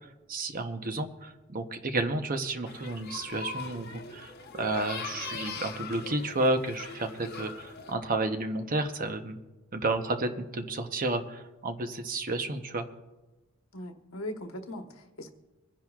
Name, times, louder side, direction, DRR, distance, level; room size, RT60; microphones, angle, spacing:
voice 1, 0.3-9.4 9.7-12.9, right 2 dB, 40° right, 7 dB, 0.9 m, -31 dB
sound 1, 2.6-7.9, left 4 dB, 50° left, 1.1 m, -41 dB
voice 2, 13.7-15.3, left 1 dB, 75° left, 5 dB, 1.2 m, -39 dB
25.0 x 10.5 x 2.4 m, 1.1 s
head